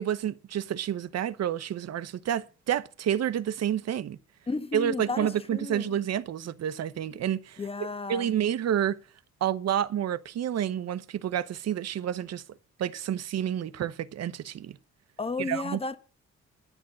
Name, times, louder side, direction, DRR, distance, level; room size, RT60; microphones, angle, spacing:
voice 1, 0.0-4.2 4.7-7.6 8.1-9.0 9.4-12.4 12.8-14.8 15.4-15.8, right 10 dB, 60° right, 0.9 m, -29 dB
voice 2, 4.5-6.0 7.6-8.3 15.2-16.0, left 3 dB, 20° left, 1.2 m, -33 dB
10.5 x 10.0 x 7.5 m
cardioid pair, 90°, 30 cm